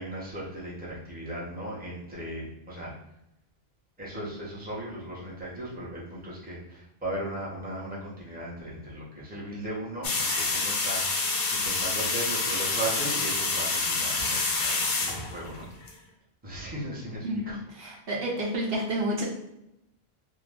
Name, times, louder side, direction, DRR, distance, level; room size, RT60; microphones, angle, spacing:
voice 1, 0.0-2.9 4.0-15.7 16.4-17.9, right 1 dB, 10° right, -7 dB, 0.8 m, -37 dB
sound 1, 10.0-15.9, left 3 dB, 60° left, 0.7 m, -28 dB
voice 2, 17.8-19.2, right 1 dB, 70° right, -3 dB, 0.9 m, -29 dB
2.6 x 2.2 x 3.3 m, 0.84 s
omnidirectional pair, 1.1 m